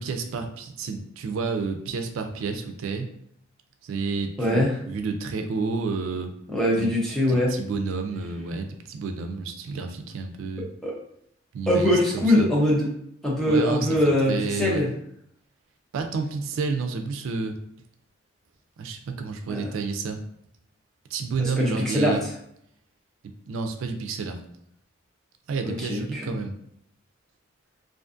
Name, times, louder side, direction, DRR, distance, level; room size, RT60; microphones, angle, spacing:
voice 1, 0.0-3.1 3.8-6.3 6.8-6.9 7.3-10.7 11.5-12.5 13.5-14.0 14.3-14.8 15.9-17.6 18.8-20.2 21.1-22.2 23.5-24.4 25.5-26.5, right 4 dB, 90° right, 6 dB, 0.3 m, -30 dB
voice 2, 4.4-4.8 6.5-7.5 10.8-11.0 11.7-12.9 13.2-14.9 19.5-19.7 21.4-22.2 25.6-26.4, left 1 dB, 5° left, -5 dB, 0.6 m, -22 dB
2.4 x 2.4 x 2.4 m, 0.71 s
head